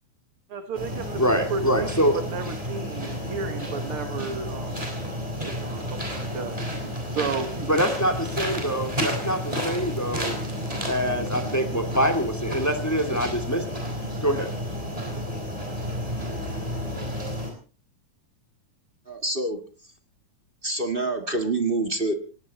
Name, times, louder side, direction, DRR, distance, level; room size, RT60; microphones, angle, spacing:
voice 1, 0.5-4.9 5.3-7.8, right 5 dB, 50° right, 8 dB, 2.1 m, -34 dB
sound 1, 0.7-17.5, equal, 10° right, 5.1 m, -31 dB
voice 2, 1.2-2.2 7.7-10.4 10.9-13.6 14.2-14.5, equal, 5° left, 6 dB, 2.0 m, -25 dB
voice 3, 19.1-19.6 20.6-22.1, right 2 dB, 25° right, 6 dB, 1.1 m, -26 dB
19.0 x 17.5 x 4.3 m, 0.38 s
omnidirectional pair, 3.5 m